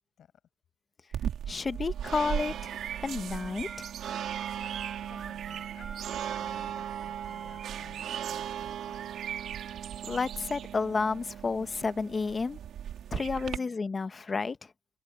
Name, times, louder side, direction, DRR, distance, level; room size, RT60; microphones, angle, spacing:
sound 1, 1.1-13.6, right 9 dB, 55° right, 3.0 m, -37 dB
voice 1, 1.5-2.5 3.0-3.8 10.1-12.6 13.1-14.6, left 4 dB, 25° left, 1.3 m, -31 dB
Harmonica, 2.2-7.7, right 4 dB, 25° right, 4.9 m, -49 dB
voice 2, 4.3-9.1 13.4-13.8, left 9 dB, 50° left, 5.2 m, -57 dB
cardioid pair, 100°, 0 cm